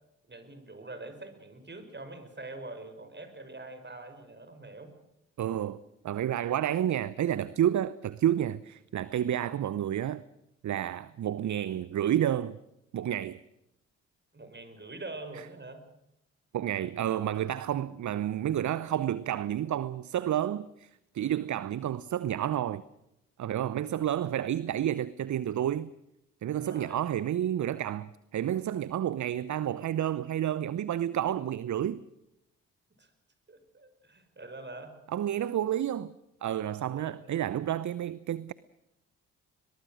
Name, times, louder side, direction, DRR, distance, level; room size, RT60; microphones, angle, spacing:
voice 1, 0.3-4.9 14.3-15.9 26.6-27.0 33.0-33.1 33.5-35.0 36.9-37.4, right 2 dB, 30° right, 5.5 m, -44 dB
voice 2, 5.4-10.2 10.6-12.6 12.9-13.4 16.5-20.9 21.1-22.8 23.4-25.9 26.4-32.0 35.1-36.1 36.4-38.5, right 11 dB, 50° right, 0.8 m, -30 dB
22.5 x 22.0 x 6.4 m
hypercardioid pair, 40°, 36 cm